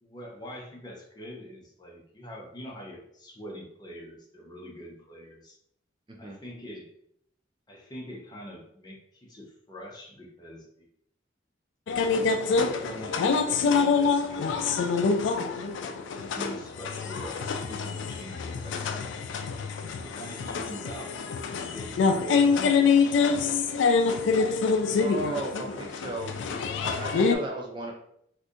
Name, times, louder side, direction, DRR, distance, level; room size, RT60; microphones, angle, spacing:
voice 1, 0.0-5.6 6.2-6.9 7.7-10.9 12.0-12.3 12.7-15.6 16.2-18.8 20.0-23.4, equal, 20° left, -1 dB, 0.6 m, -44 dB
sound 1, 11.9-27.3, left 5 dB, 80° left, 0.3 m, -26 dB
voice 2, 25.0-26.4 26.8-27.9, right 1 dB, 25° right, 0 dB, 0.4 m, -35 dB
2.6 x 2.5 x 3.6 m, 0.71 s
head